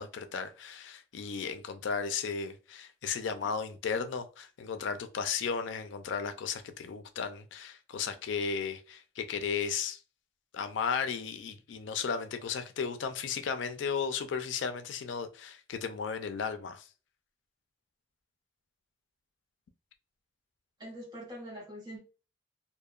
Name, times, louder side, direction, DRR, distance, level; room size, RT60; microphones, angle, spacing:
voice 1, 0.0-10.0 10.5-16.9, left 6 dB, 90° left, 0.4 m, -35 dB
voice 2, 20.8-22.0, equal, 25° right, 0.9 m, -43 dB
2.7 x 2.1 x 2.3 m
head